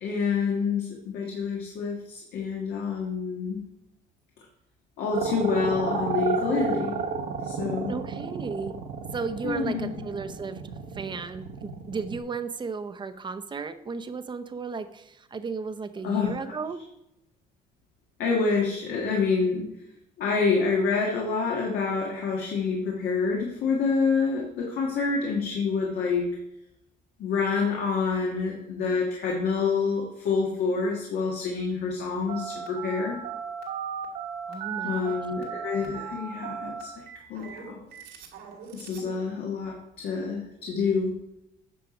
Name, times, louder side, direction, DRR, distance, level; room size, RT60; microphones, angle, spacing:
voice 1, 0.0-3.6 5.0-7.0 7.4-8.0 9.4-10.0 16.0-16.3 18.2-19.7 20.2-26.3 27.2-33.2 34.8-36.9 37.3-37.8 38.7-41.1, left 5 dB, 70° left, -1 dB, 1.6 m, -27 dB
sound 1, 5.1-12.2, right 5 dB, 70° right, 1.2 m, -31 dB
voice 2, 7.9-8.7 9.1-10.6 10.9-16.8 34.5-35.2, right 5 dB, 25° right, 9 dB, 0.8 m, -34 dB
Telephone, 32.3-39.1, right 8 dB, 90° right, 2.5 m, -36 dB
9.2 x 5.9 x 5.0 m, 0.85 s
cardioid pair, 110°, 17 cm